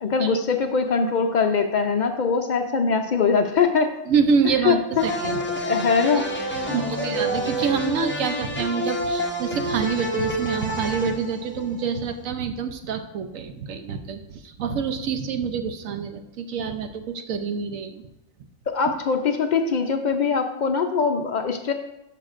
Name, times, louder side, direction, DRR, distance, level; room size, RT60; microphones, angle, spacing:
voice 1, 0.0-3.9 4.6-4.7 5.6-6.2 6.7-7.2 18.7-21.7, left 5 dB, 70° left, 5 dB, 0.4 m, -22 dB
voice 2, 4.1-5.4 6.7-18.1, right 6 dB, 75° right, 7 dB, 1.1 m, -26 dB
sound 1, 5.0-12.0, right 1 dB, 10° left, 0.7 m, -28 dB
12.5 x 5.7 x 2.5 m, 0.92 s
omnidirectional pair, 1.4 m